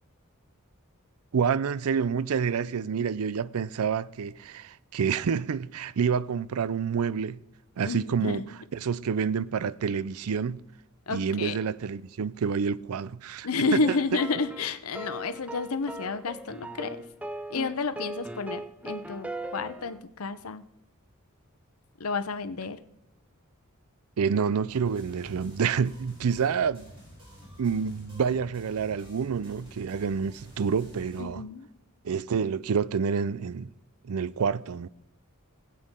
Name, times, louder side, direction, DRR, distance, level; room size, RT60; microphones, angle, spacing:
voice 1, 1.3-7.4 7.8-8.4 8.8-10.6 11.1-13.8 24.2-26.9 27.6-31.4 32.0-33.7 34.0-34.9, right 6 dB, 75° right, 0.4 m, -28 dB
voice 2, 7.9-8.5 11.1-11.6 13.4-17.0 17.5-20.7 22.0-22.8 31.2-31.7, left 4 dB, 75° left, 0.8 m, -30 dB
sound 1, 13.8-20.0, right 1 dB, 5° right, 0.5 m, -39 dB
sound 2, 24.7-31.2, equal, 25° right, 5.1 m, -50 dB
20.0 x 8.5 x 3.7 m
head